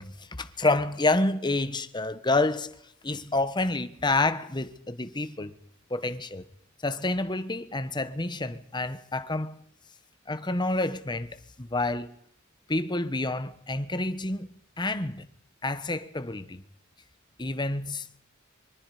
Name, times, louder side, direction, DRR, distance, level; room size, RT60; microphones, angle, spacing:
voice 1, 0.0-2.7 3.0-5.5 5.9-6.4 6.8-9.6 10.3-12.1 12.7-14.5 14.8-15.2 15.6-16.6 17.4-18.2, left 2 dB, 20° left, 1.2 m, -28 dB
25.0 x 24.5 x 5.0 m
head